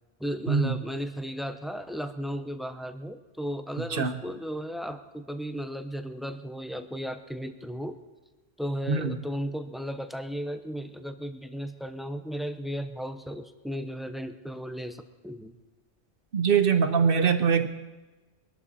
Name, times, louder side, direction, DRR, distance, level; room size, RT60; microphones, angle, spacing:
voice 1, 0.2-8.0 8.6-15.5, equal, ahead, 8 dB, 0.6 m, -35 dB
voice 2, 16.3-17.7, right 6 dB, 55° right, 9 dB, 1.1 m, -22 dB
23.0 x 12.0 x 4.3 m, 1.2 s
omnidirectional pair, 1.1 m